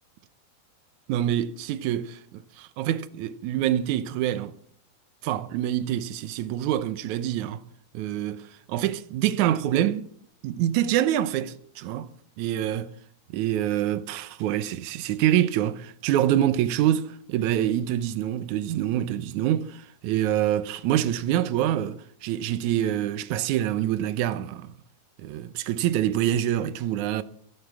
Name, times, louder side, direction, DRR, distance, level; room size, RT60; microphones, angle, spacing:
voice 1, 1.1-4.5 5.2-7.6 7.9-10.1 10.4-12.1 12.4-12.9 13.3-24.7 25.2-27.2, right 11 dB, 70° right, 1.9 m, -26 dB
23.5 x 8.4 x 7.2 m
omnidirectional pair, 4.1 m